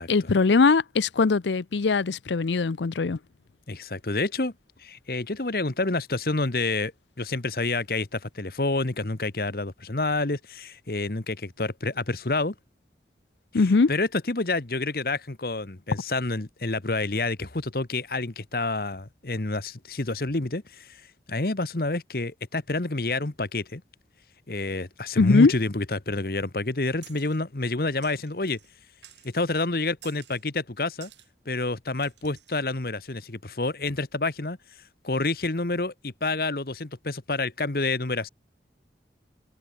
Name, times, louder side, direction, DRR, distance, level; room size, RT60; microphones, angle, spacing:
voice 1, 0.0-3.2 13.5-13.9 25.2-25.5, left 4 dB, 85° left, 0.6 m, -21 dB
voice 2, 3.7-4.5 4.8-6.9 7.2-12.5 13.9-23.8 24.5-28.6 29.2-31.1 31.4-34.6 35.0-38.3, left 2 dB, 55° left, 1.2 m, -28 dB
sound 1, 27.0-27.4 28.0-28.7 29.0-29.5 30.0-30.4 31.0-31.3 32.0-32.6, right 13 dB, 85° right, 4.4 m, -52 dB
head